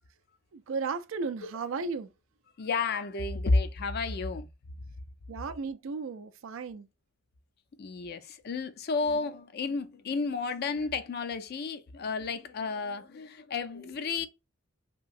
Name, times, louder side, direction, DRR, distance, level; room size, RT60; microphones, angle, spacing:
voice 1, 0.5-2.1 5.3-6.9, right 4 dB, 70° right, 0.4 m, -35 dB
voice 2, 2.6-4.5 7.8-14.3, left 4 dB, 50° left, 0.4 m, -31 dB
3.0 x 2.7 x 2.4 m
head